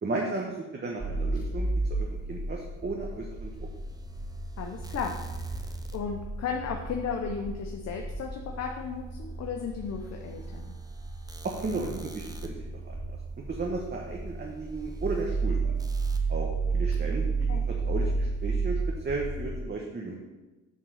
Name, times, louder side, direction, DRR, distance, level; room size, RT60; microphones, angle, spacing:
voice 1, 0.0-3.7 11.4-13.2 13.5-15.7 16.3-17.5 17.8-18.8 19.0-20.1, right 3 dB, 35° right, -1 dB, 1.2 m, -34 dB
sound 1, 1.0-19.6, right 3 dB, 10° right, 0.8 m, -32 dB
voice 2, 4.6-5.6 5.9-10.7 17.5-17.6, left 6 dB, 60° left, 2 dB, 0.9 m, -35 dB
8.1 x 3.7 x 6.4 m, 1.1 s
cardioid pair, 90°, 30 cm